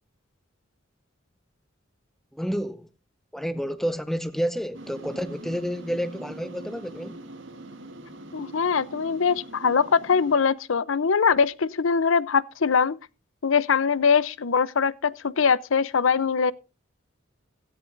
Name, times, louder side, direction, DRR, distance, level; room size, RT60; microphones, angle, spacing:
voice 1, 2.3-2.9 3.3-7.2, equal, ahead, 0.7 m, -30 dB
sound 1, 4.7-10.4, right 1 dB, 65° right, 2.2 m, -43 dB
voice 2, 8.3-13.0 13.4-16.5, left 6 dB, 80° left, 0.6 m, -22 dB
16.5 x 13.5 x 2.6 m
head